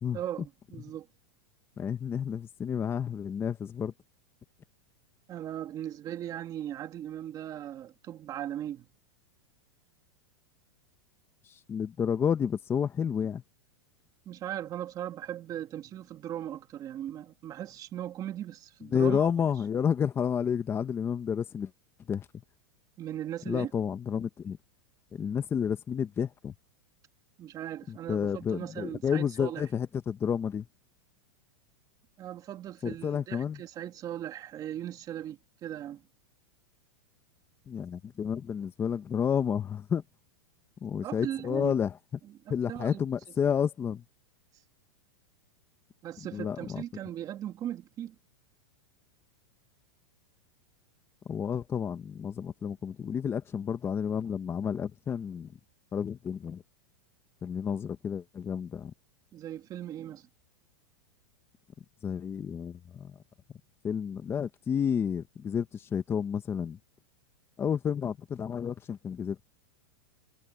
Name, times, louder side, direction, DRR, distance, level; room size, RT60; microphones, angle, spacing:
voice 1, 0.1-1.1 5.3-8.9 14.3-19.3 23.0-23.7 27.4-29.6 32.2-36.0 41.0-41.7 42.2-43.0 46.0-48.2 59.3-60.3, right 11 dB, 30° right, 2.5 m, -38 dB
voice 2, 1.8-3.9 11.4-13.4 18.9-21.7 22.1-22.3 23.5-24.6 25.1-26.5 27.9-30.7 32.8-33.6 37.7-40.0 40.8-41.9 42.5-44.0 46.3-46.8 51.3-55.5 55.9-56.6 57.4-58.9 62.0-63.2 63.8-66.8 67.6-69.4, left 7 dB, 20° left, 1.1 m, -30 dB
supercardioid pair, 140°, 13 cm